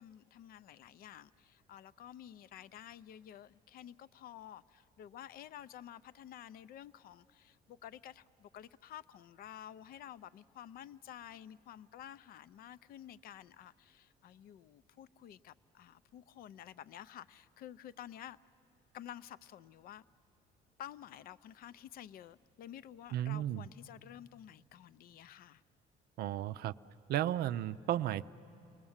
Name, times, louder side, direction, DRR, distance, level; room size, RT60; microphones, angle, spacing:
voice 1, 0.0-18.4 18.9-20.0 20.8-25.6, left 11 dB, 60° left, 17 dB, 0.5 m, -51 dB
voice 2, 23.1-23.6 26.2-26.7 27.1-28.2, right 12 dB, 70° right, 14 dB, 0.5 m, -34 dB
30.0 x 20.0 x 7.2 m, 3.0 s
cardioid pair, 110°, 17 cm